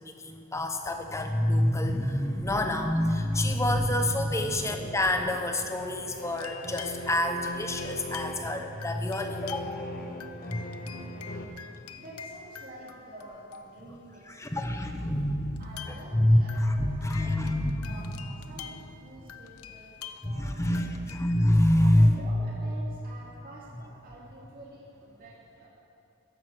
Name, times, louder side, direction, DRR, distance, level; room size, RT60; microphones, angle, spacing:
voice 1, 0.0-9.9 10.5-11.0 14.3-15.6 15.9-18.2 20.2-22.2, left 1 dB, 15° left, 5 dB, 0.9 m, -27 dB
sound 1, 4.6-11.5, left 1 dB, 40° left, 1.2 m, -40 dB
sound 2, 6.3-8.5 8.8-9.9 10.2-14.0 14.6-14.7 15.6-21.5, left 8 dB, 80° left, 0.8 m, -47 dB
voice 2, 12.0-14.6 15.6-17.6 17.8-20.9 21.8-25.7, right 1 dB, 40° right, -6 dB, 2.5 m, -48 dB
15.0 x 11.0 x 6.2 m, 2.7 s
head